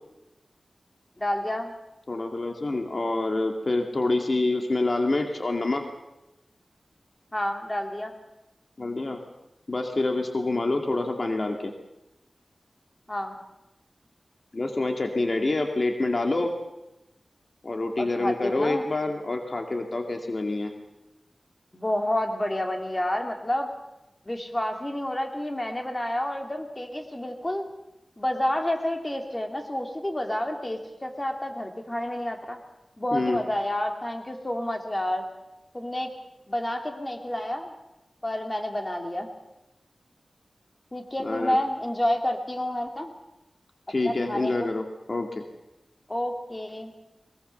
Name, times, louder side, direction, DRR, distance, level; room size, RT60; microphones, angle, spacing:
voice 1, 1.2-1.7 7.3-8.2 13.1-13.4 18.0-18.8 21.7-23.7 24.2-27.7 28.2-32.6 33.0-35.2 35.7-36.1 36.5-37.7 38.2-39.3 40.9-43.1 44.0-44.7 46.1-46.9, left 1 dB, 25° left, 4 dB, 3.1 m, -29 dB
voice 2, 2.1-5.8 8.8-9.2 9.7-11.7 14.5-16.5 17.6-20.7 33.1-33.4 41.2-41.6 43.9-45.4, left 2 dB, 50° left, 4 dB, 2.3 m, -27 dB
22.0 x 21.0 x 6.9 m, 0.96 s
wide cardioid pair, 60°, 0 cm